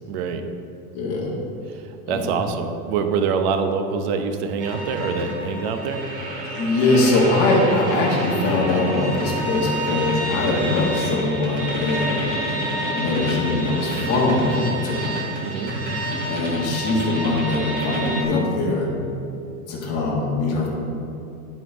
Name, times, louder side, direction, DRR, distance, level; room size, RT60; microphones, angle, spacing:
voice 1, 0.1-0.4 1.7-6.0 15.4-15.7, right 5 dB, 50° right, 7 dB, 0.8 m, -25 dB
voice 2, 0.9-1.3 2.1-2.4 6.4-12.3 12.9-15.1 16.3-18.9 19.7-20.7, left 2 dB, 35° left, -4 dB, 1.9 m, -22 dB
sound 1, 4.6-18.2, right 1 dB, 25° right, 2.2 m, -28 dB
11.5 x 4.6 x 4.8 m, 2.7 s
supercardioid pair, 160°, 43 cm